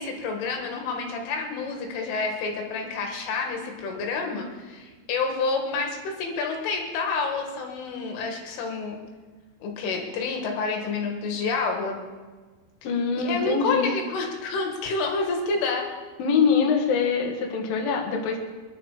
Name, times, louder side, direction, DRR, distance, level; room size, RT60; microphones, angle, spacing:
voice 1, 0.0-9.0 9.6-12.0 13.2-16.0, left 4 dB, 75° left, 2 dB, 4.4 m, -29 dB
voice 2, 12.8-13.9 16.2-18.4, left 5 dB, 55° left, 1 dB, 3.0 m, -24 dB
25.5 x 10.5 x 5.1 m, 1.3 s
omnidirectional pair, 5.7 m